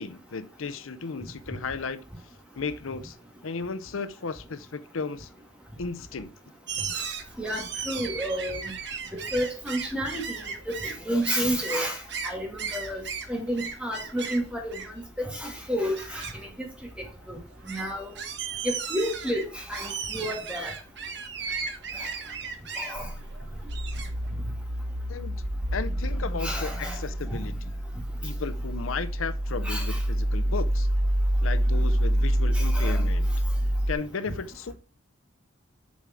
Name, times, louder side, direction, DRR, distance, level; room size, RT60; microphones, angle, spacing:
voice 1, 0.0-2.1 2.6-3.2 3.4-5.3 5.8-6.3 25.1-25.4 25.7-27.8 28.2-30.9 31.4-33.3 33.9-34.7, left 4 dB, 85° left, 0.7 m, -34 dB
sound 1, 6.7-24.3, right 6 dB, 55° right, 1.3 m, -37 dB
voice 2, 7.4-8.6 9.1-10.2 10.8-12.0 12.2-13.0 13.3-14.8 15.3-16.3 17.3-17.4 17.7-18.1 18.6-20.7 22.0-22.1 22.8-23.1 26.4-27.0 29.6-30.0 32.5-33.0, equal, 5° right, 2.0 m, -30 dB
sound 2, 23.0-33.9, equal, 80° right, 1.1 m, -27 dB
7.3 x 4.8 x 5.8 m
head